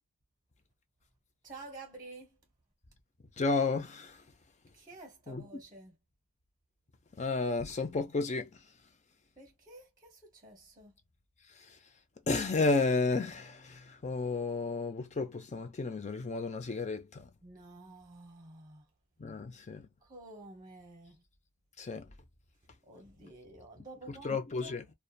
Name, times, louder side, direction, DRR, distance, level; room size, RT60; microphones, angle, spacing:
voice 1, 1.4-2.4 4.7-5.9 9.4-10.9 17.4-18.9 20.0-21.2 22.8-24.8, right 2 dB, 20° right, 0.8 m, -51 dB
voice 2, 3.4-4.2 5.3-5.6 7.2-8.6 11.6-11.8 12.3-17.3 19.2-19.9 21.8-22.1 24.1-24.8, left 3 dB, 30° left, 0.5 m, -32 dB
2.9 x 2.2 x 2.3 m
head